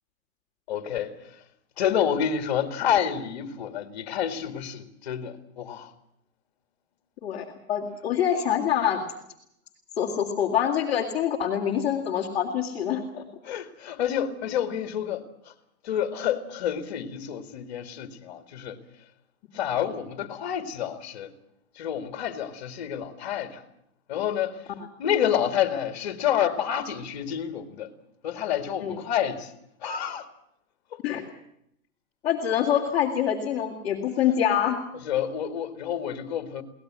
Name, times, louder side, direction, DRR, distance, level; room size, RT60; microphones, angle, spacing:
voice 1, 0.7-1.4 1.8-5.9 13.4-15.5 15.8-18.8 19.5-21.3 21.8-23.6 24.1-24.7 25.0-27.9 28.2-29.5 29.8-30.3 30.9-31.0 34.9-36.6, left 9 dB, 30° left, 2.0 m, -29 dB
voice 2, 7.2-9.0 10.0-13.2 28.8-29.0 31.0-31.2 32.2-34.8, left 9 dB, 10° left, 2.1 m, -25 dB
23.5 x 18.5 x 7.5 m
hypercardioid pair, 175°, 43 cm